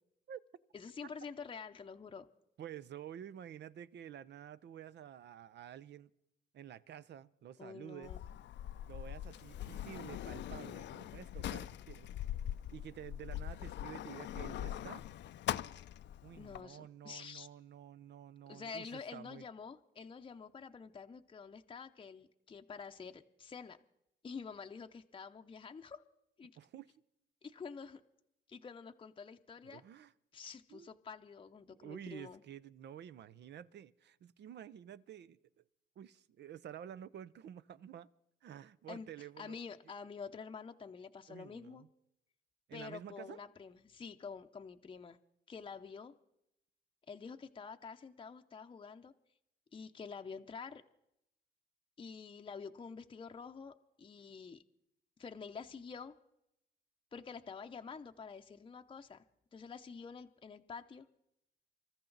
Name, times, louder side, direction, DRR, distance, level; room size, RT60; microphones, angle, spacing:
voice 1, 0.7-2.3 7.6-8.2 16.4-17.5 18.5-23.8 24.2-26.0 26.4-26.5 27.4-28.0 28.5-29.8 30.3-32.4 38.9-39.1 39.4-41.9 42.7-45.2 45.5-46.1 47.1-49.1 49.7-50.8 52.0-54.6 55.2-56.2 57.1-59.2 59.5-61.1, left 5 dB, 25° left, 0.7 m, -48 dB
voice 2, 2.6-6.1 6.5-8.1 8.9-12.1 12.7-15.0 16.2-19.4 26.6-26.9 29.6-30.1 30.7-30.9 31.7-35.6 36.0-38.1 38.4-39.6 41.3-41.9 42.7-43.4, right 10 dB, 60° right, 0.6 m, -50 dB
Sliding door, 8.0-16.6, left 11 dB, 65° left, 0.5 m, -42 dB
25.5 x 14.0 x 4.0 m
cardioid pair, 90°, 20 cm